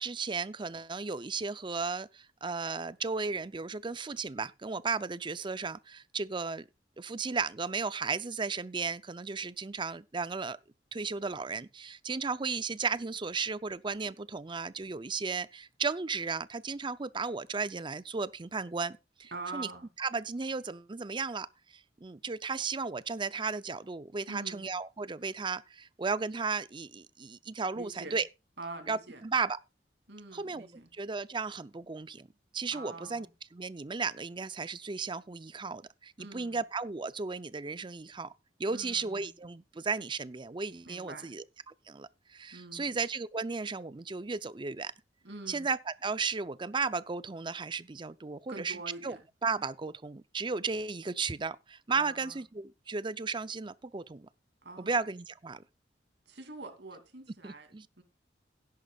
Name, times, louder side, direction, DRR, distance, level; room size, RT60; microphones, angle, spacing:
voice 1, 0.0-6.7 7.0-10.6 10.9-19.7 20.0-21.5 22.0-28.3 28.9-29.6 30.3-30.7 30.9-32.3 32.5-33.3 33.5-38.3 38.6-41.4 41.9-44.9 45.5-48.8 49.0-49.2 49.4-54.3 54.8-55.6 57.4-57.9, right 4 dB, 25° right, 0.5 m, -35 dB
voice 2, 19.3-19.9 24.3-24.8 27.7-28.2 28.6-29.2 30.1-30.9 32.7-33.3 36.2-36.6 38.7-39.3 40.8-41.3 42.5-43.0 45.2-45.7 48.5-49.3 51.9-52.4 54.6-55.0 56.3-57.7 58.0-58.1, right 3 dB, 70° right, 2.8 m, -45 dB
16.5 x 10.5 x 2.4 m
head